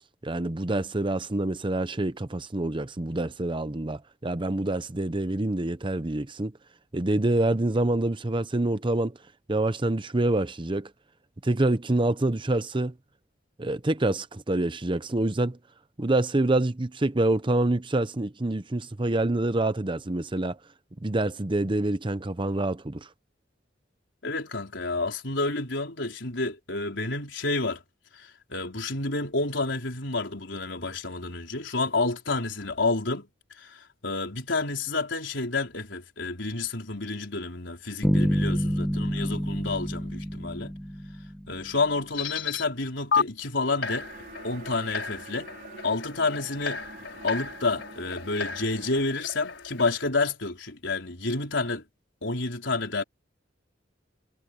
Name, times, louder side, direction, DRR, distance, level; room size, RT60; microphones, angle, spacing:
voice 1, 0.2-6.5 6.9-9.2 9.5-10.9 11.4-12.9 13.6-15.6 16.0-20.6 21.0-23.1, right 2 dB, 25° right, 0.8 m, -26 dB
voice 2, 24.2-27.8 28.1-33.3 33.6-40.7 41.5-44.1 44.4-45.5 45.8-46.8 47.2-51.8 52.2-53.0, left 3 dB, 70° left, 4.8 m, -29 dB
sound 1, 38.0-41.8, equal, 5° left, 1.4 m, -27 dB
sound 2, 42.1-42.6 43.1-43.2 43.8-50.1, left 5 dB, 90° left, 5.1 m, -33 dB
sound 3, 43.6-49.0, right 3 dB, 50° right, 4.2 m, -47 dB
head